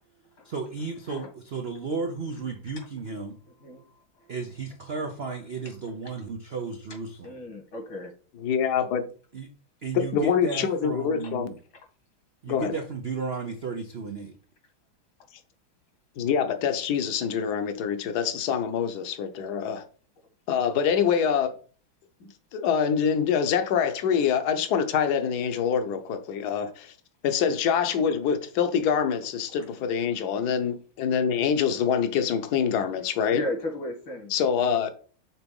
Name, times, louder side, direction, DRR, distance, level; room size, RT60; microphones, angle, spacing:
voice 1, 0.4-3.4 4.3-7.4 9.3-9.5 9.8-11.5 12.4-14.3, right 4 dB, 85° right, 0.5 m, -34 dB
voice 2, 7.2-8.1 33.3-34.3, left 1 dB, 75° left, 2.9 m, -34 dB
voice 3, 8.3-9.0 9.9-11.5 12.5-12.7 16.2-19.8 20.5-21.5 22.2-26.9 27.2-33.4 34.3-34.9, left 7 dB, 60° left, 1.2 m, -25 dB
6.0 x 4.0 x 5.3 m
omnidirectional pair, 2.2 m